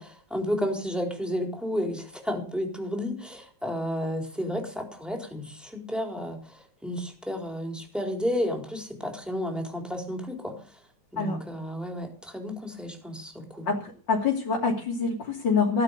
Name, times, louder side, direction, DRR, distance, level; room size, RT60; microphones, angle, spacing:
voice 1, 0.0-10.5 11.1-13.7, equal, ahead, 2 dB, 4.1 m, -32 dB
voice 2, 13.7-15.8, left 4 dB, 80° left, -2 dB, 3.8 m, -26 dB
16.5 x 11.0 x 6.9 m, 0.41 s
omnidirectional pair, 1.9 m